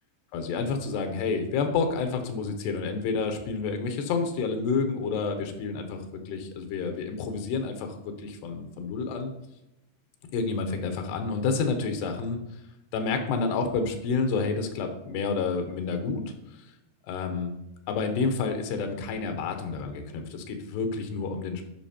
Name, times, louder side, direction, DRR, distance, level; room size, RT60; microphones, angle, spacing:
voice 1, 0.3-9.3 10.3-12.4 12.9-16.2 17.0-17.5 17.9-21.6, left 4 dB, 90° left, 6 dB, 3.1 m, -29 dB
11.0 x 5.3 x 4.3 m, 0.89 s
omnidirectional pair, 4.6 m